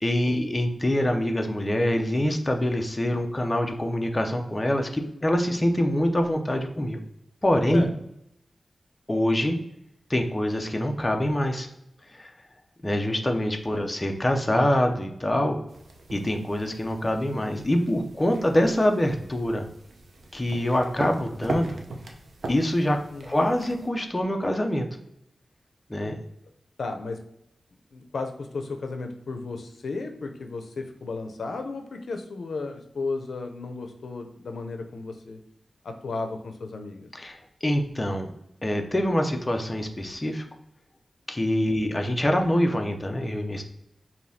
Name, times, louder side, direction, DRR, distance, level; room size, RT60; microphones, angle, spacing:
voice 1, 0.0-7.0 7.4-7.8 9.1-9.6 10.1-11.7 12.1-12.3 12.8-15.6 16.1-19.7 20.3-21.8 22.5-24.9 25.9-26.2 37.1-38.3 38.6-40.4 41.3-43.6, left 1 dB, 20° left, 4 dB, 0.4 m, -25 dB
sound 1, 15.7-23.9, right 2 dB, 75° right, 0.6 m, -40 dB
voice 2, 26.8-27.2 27.9-35.4 35.8-37.1 41.6-41.8, left 3 dB, 80° left, 5 dB, 0.5 m, -34 dB
5.0 x 2.7 x 2.6 m, 0.79 s
wide cardioid pair, 135°, 0 cm